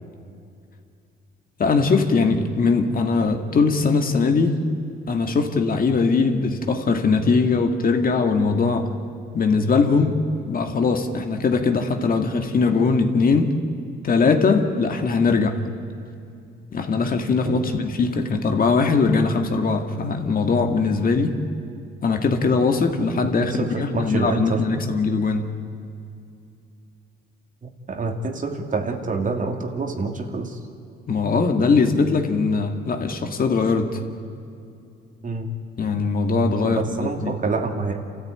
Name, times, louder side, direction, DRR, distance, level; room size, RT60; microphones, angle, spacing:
voice 1, 1.6-4.6 5.1-8.9 9.3-10.2 10.5-13.5 14.0-15.6 16.7-21.3 22.0-25.5 31.1-33.9 35.8-37.4, left 4 dB, 45° left, 5 dB, 2.0 m, -21 dB
voice 2, 17.5-17.8 23.4-24.8 27.9-30.6 35.2-35.6 36.6-38.0, right 3 dB, 40° right, 4 dB, 2.4 m, -27 dB
27.5 x 14.0 x 9.2 m, 2.5 s
cardioid pair, 90°, 20 cm